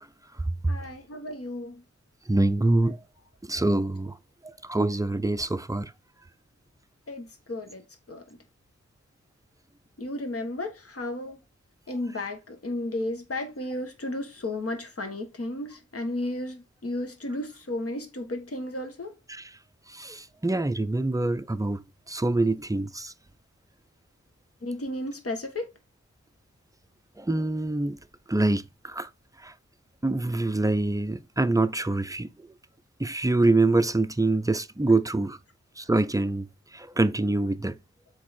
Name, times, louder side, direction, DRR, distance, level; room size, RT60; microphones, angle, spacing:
voice 1, 0.7-1.8 7.1-8.4 10.0-11.4 11.9-19.1 24.6-25.7, left 1 dB, 50° left, 1.6 m, -33 dB
voice 2, 2.3-3.0 3.5-4.2 4.4-5.9 19.3-19.5 19.9-23.1 27.2-28.0 28.3-29.1 29.4-29.5 30.0-32.3 33.0-35.4 35.8-36.5 36.7-37.8, right 2 dB, 10° right, 0.5 m, -25 dB
7.6 x 4.6 x 4.3 m
wide cardioid pair, 85°, 29 cm